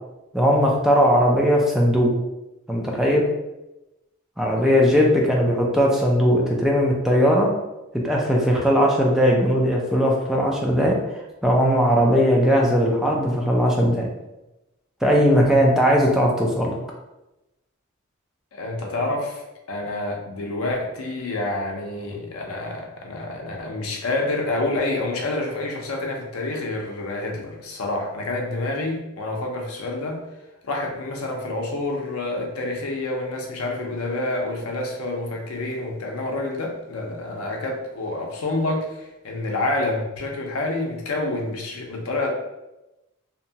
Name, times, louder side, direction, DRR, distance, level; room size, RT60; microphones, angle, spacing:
voice 1, 0.3-2.1 2.7-3.2 4.4-7.5 8.0-11.0 11.4-14.1 15.0-16.8, equal, ahead, -2 dB, 0.3 m, -19 dB
voice 2, 4.6-5.0 18.5-30.2 30.6-42.3, left 2 dB, 75° left, 1 dB, 0.6 m, -28 dB
2.8 x 2.2 x 2.7 m, 0.97 s
head